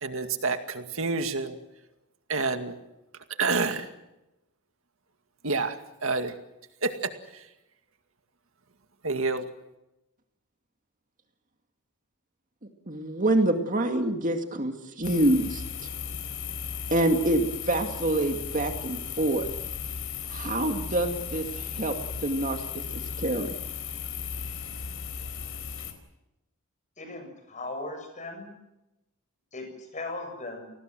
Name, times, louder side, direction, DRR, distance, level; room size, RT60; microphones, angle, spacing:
voice 1, 0.0-1.6 2.3-2.8 3.4-3.9 5.4-6.3 6.8-7.4 9.0-9.4, right 4 dB, 65° right, 7 dB, 2.2 m, -28 dB
voice 2, 12.9-15.9 16.9-19.5 20.3-23.5, right 1 dB, 35° right, 5 dB, 2.2 m, -26 dB
sound 1, 15.0-25.9, left 6 dB, 60° left, 4.2 m, -36 dB
voice 3, 27.0-28.5 29.5-30.7, left 2 dB, 35° left, 6 dB, 7.6 m, -38 dB
29.5 x 19.5 x 7.7 m, 0.94 s
head